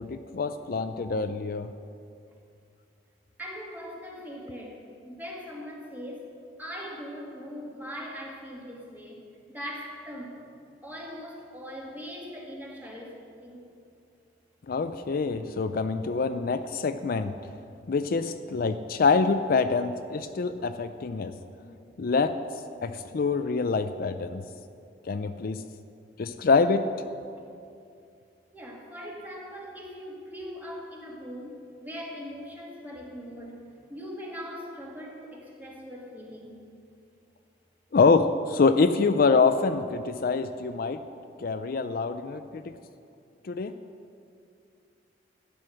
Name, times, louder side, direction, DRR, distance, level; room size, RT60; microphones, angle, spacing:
voice 1, 0.0-1.7 14.7-17.3 17.9-21.3 22.0-22.4 22.8-24.4 25.1-25.6 26.2-26.9 37.9-41.0 41.4-42.7 43.4-43.7, left 4 dB, 55° left, 10 dB, 0.4 m, -25 dB
voice 2, 3.4-6.3 6.6-9.2 9.5-10.5 10.8-13.6 28.5-36.6, equal, 10° right, -2 dB, 2.1 m, -40 dB
12.5 x 9.4 x 6.3 m, 2.5 s
head